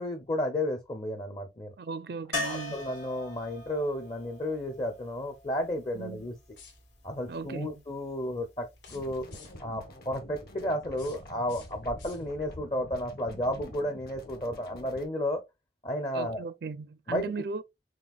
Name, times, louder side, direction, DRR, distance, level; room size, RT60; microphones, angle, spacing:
voice 1, 0.0-1.7 2.4-6.3 7.0-9.2 9.6-15.4 15.8-16.4 17.1-17.2, left 1 dB, 30° left, 0.6 m, -32 dB
voice 2, 1.8-2.8 5.9-6.2 7.3-7.8 16.1-17.6, right 4 dB, 60° right, 0.4 m, -37 dB
sound 1, 2.3-6.2 8.9-9.0 9.2-9.3, left 2 dB, 70° left, 2.3 m, -39 dB
sound 2, 6.5-7.1 8.7-9.8 10.7-12.6, left 5 dB, 85° left, 2.4 m, -55 dB
sound 3, 8.9-15.1, equal, 55° left, 1.1 m, -47 dB
5.9 x 2.4 x 2.3 m
head